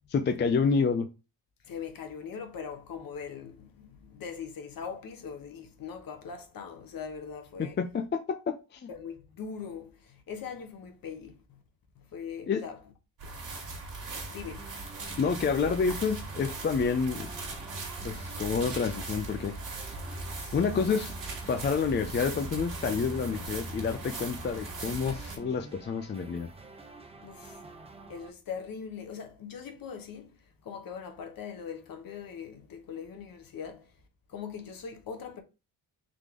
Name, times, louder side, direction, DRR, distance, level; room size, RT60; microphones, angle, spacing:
voice 1, 0.1-1.1 7.6-8.9 12.5-12.6 15.2-17.3 18.0-19.6 20.5-21.1 21.5-26.5, left 5 dB, 25° left, 0.4 m, -28 dB
voice 2, 1.6-7.8 8.9-11.6 12.0-12.8 14.3-14.7 20.4-21.0 27.2-27.6 28.1-30.4 30.6-33.9 34.3-35.4, left 6 dB, 55° left, 1.1 m, -41 dB
sound 1, 13.2-25.4, right 3 dB, 50° right, 1.8 m, -39 dB
sound 2, 14.6-28.3, right 3 dB, 15° right, 0.6 m, -49 dB
3.8 x 3.2 x 3.7 m
cardioid pair, 90°, 41 cm